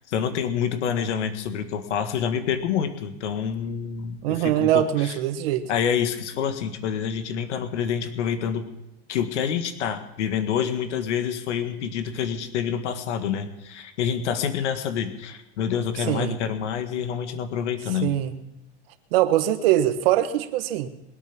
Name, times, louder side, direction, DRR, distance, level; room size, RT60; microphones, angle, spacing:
voice 1, 0.1-5.2 5.7-8.6 9.1-18.1, left 8 dB, 80° left, 8 dB, 1.8 m, -27 dB
voice 2, 4.2-5.7 16.0-16.4 18.0-18.4 19.1-20.9, right 12 dB, 55° right, 10 dB, 1.4 m, -22 dB
22.0 x 8.9 x 6.1 m, 0.91 s
supercardioid pair, 160°, 35 cm